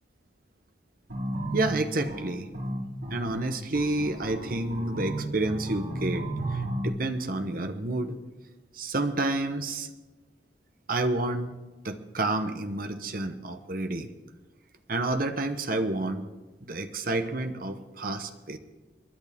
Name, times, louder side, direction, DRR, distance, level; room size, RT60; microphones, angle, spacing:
sound 1, 1.1-6.9, right 1 dB, 80° right, 5.5 m, -34 dB
voice 1, 1.5-2.5 3.1-8.2 8.7-9.9 10.9-11.6 11.8-14.1 14.9-16.3 16.6-18.6, right 2 dB, 55° right, 8 dB, 1.1 m, -29 dB
29.0 x 11.0 x 3.6 m, 1.3 s
head